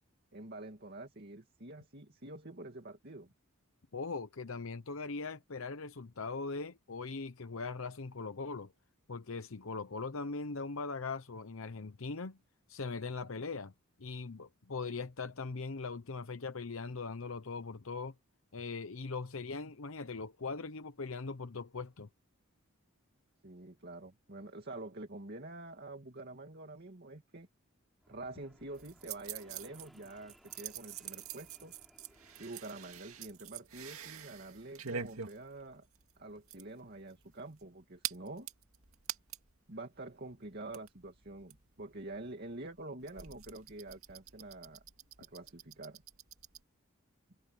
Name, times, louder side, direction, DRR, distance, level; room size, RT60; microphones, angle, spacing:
voice 1, 0.3-3.3 23.4-27.5 28.1-31.7 32.4-35.9 36.2-38.5 39.7-44.8 45.2-46.0, right 2 dB, 50° right, 2.3 m, -47 dB
voice 2, 3.9-8.7 9.1-12.4 12.7-13.7 14.0-18.1 18.5-22.1, left 4 dB, 70° left, 0.8 m, -40 dB
Fixed-wing aircraft airplane, 28.0-33.6, equal, ahead, 5.4 m, -64 dB
sound 1, 28.7-39.6 39.9-40.0 40.2-46.6, right 8 dB, 85° right, 2.2 m, -46 dB
head